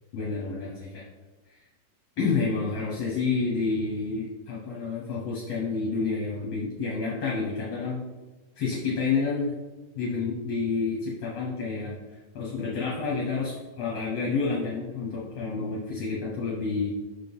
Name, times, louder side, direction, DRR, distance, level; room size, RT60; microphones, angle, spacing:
voice 1, 0.1-1.0 2.2-8.0 8.6-9.5 10.0-12.0 12.3-16.9, left 4 dB, 65° left, -5 dB, 1.8 m, -29 dB
6.3 x 3.8 x 5.4 m, 1.2 s
omnidirectional pair, 2.2 m